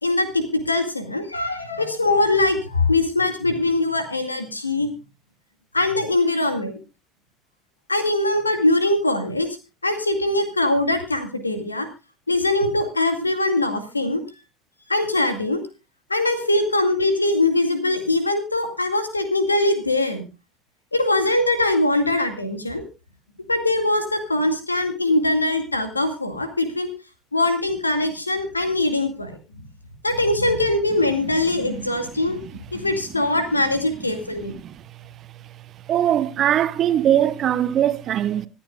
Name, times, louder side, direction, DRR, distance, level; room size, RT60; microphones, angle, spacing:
voice 1, 0.0-4.9 5.7-6.8 7.9-9.5 9.8-11.9 12.3-14.2 14.9-15.6 16.1-20.2 20.9-22.8 23.5-26.9 27.3-29.7 30.0-32.4 32.7-34.6, left 2 dB, 85° left, 2.1 m, -22 dB
voice 2, 35.9-38.5, right 11 dB, 40° right, 0.9 m, -20 dB
25.5 x 8.8 x 2.4 m
figure-of-eight pair, 65°, 0 cm